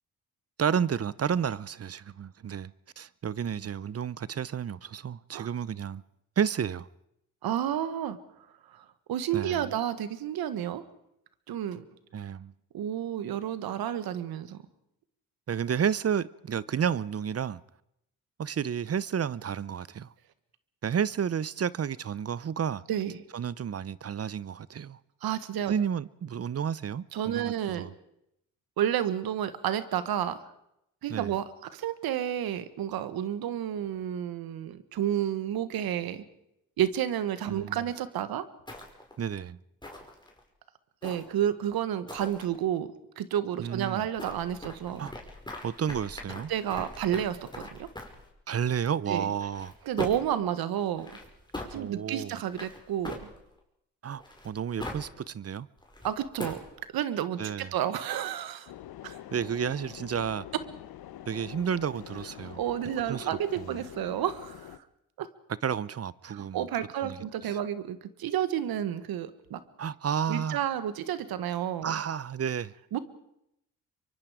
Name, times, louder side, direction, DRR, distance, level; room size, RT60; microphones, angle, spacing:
voice 1, 0.6-6.0 6.4-6.9 9.3-9.7 12.1-12.5 15.5-17.6 18.4-20.1 20.8-22.8 23.3-25.0 25.7-27.9 31.1-31.3 37.5-37.8 39.2-39.6 43.6-44.1 45.0-45.1 45.6-46.5 48.5-49.7 51.7-52.4 54.0-55.7 57.4-57.7 59.3-60.4 61.3-62.6 63.1-63.3 63.6-63.8 65.6-66.6 67.0-67.2 67.4-67.6 69.8-70.6 71.8-72.7, right 8 dB, 40° right, 0.7 m, -31 dB
voice 2, 7.4-8.2 8.7-10.8 11.5-11.8 12.7-14.6 22.9-23.1 25.2-25.7 27.1-27.9 28.8-30.4 31.0-36.2 36.8-38.5 41.0-42.9 43.2-45.1 46.5-47.9 49.1-49.3 49.8-51.1 51.7-53.2 56.0-56.6 56.9-58.7 59.0-59.2 62.6-64.8 65.2-65.3 66.3-69.6 70.3-72.0 72.9-73.0, right 10 dB, 80° right, 1.5 m, -31 dB
sound 1, 38.7-39.2 39.8-40.4 41.0-41.5 42.1-42.4 44.2-48.3 49.3-50.4 50.9-51.7 52.5-53.6 54.2-55.1 55.8-56.7, left 1 dB, 10° left, 5.1 m, -41 dB
sound 2, 58.7-64.8, left 12 dB, 80° left, 1.0 m, -45 dB
25.0 x 23.5 x 5.0 m
supercardioid pair, 55°, 36 cm